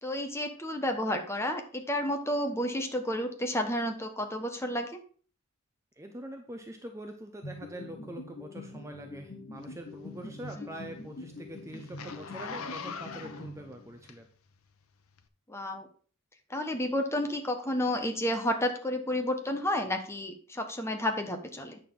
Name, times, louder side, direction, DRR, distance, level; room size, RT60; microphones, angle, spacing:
voice 1, 0.0-5.0 10.6-10.7 15.5-15.9 16.5-21.8, left 1 dB, 10° left, 4 dB, 1.2 m, -31 dB
voice 2, 6.0-14.3, right 1 dB, 15° right, 4 dB, 0.8 m, -44 dB
sound 1, 7.4-14.1, left 2 dB, 40° left, 1.1 m, -44 dB
Zipper (clothing), 9.6-14.6 15.1-15.3, left 5 dB, 75° left, 0.9 m, -42 dB
9.3 x 6.5 x 3.9 m, 0.43 s
head